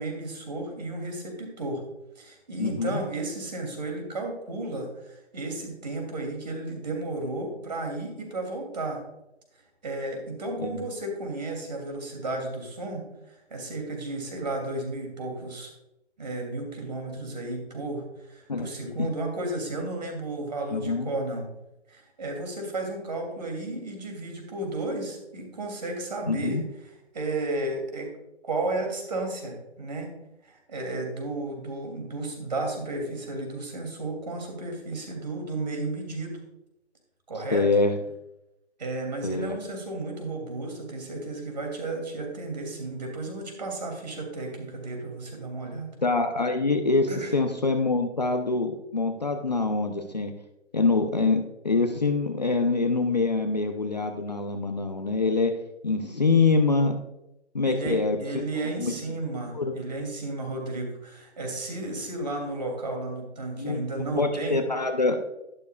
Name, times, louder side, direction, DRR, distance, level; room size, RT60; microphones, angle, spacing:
voice 1, 0.0-1.9 2.2-9.0 9.8-15.7 16.2-21.4 21.9-26.6 27.1-28.1 28.4-30.1 30.4-36.4 37.3-37.7 38.8-45.9 47.1-47.3 57.6-64.6, right 2 dB, 35° right, 2 dB, 2.8 m, -33 dB
voice 2, 2.6-3.0 10.6-10.8 18.5-18.7 19.0-19.1 20.7-21.1 26.3-26.6 37.5-37.9 39.2-39.6 46.0-50.3 50.7-55.6 55.8-57.0 57.5-58.2 58.8-58.9 59.5-59.8 63.6-63.8 64.1-65.2, left 3 dB, 35° left, 5 dB, 0.7 m, -25 dB
12.0 x 12.0 x 2.4 m, 0.88 s
hypercardioid pair, 180°, 35 cm